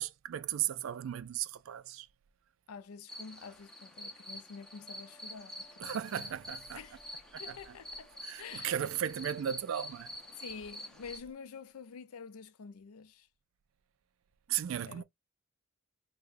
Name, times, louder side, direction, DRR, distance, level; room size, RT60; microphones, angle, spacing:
voice 1, 0.0-2.1 5.8-6.8 7.3-7.4 8.2-10.1 14.5-15.0, right 10 dB, 65° right, 0.3 m, -35 dB
voice 2, 2.7-6.0 6.7-7.0 7.4-8.1 8.4-8.7 10.3-13.3 14.8-15.0, left 5 dB, 85° left, 0.5 m, -48 dB
sound 1, 3.1-11.2, left 1 dB, 5° left, 0.5 m, -47 dB
sound 2, 4.7-11.3, left 1 dB, 25° left, 1.0 m, -63 dB
4.8 x 2.1 x 2.5 m
head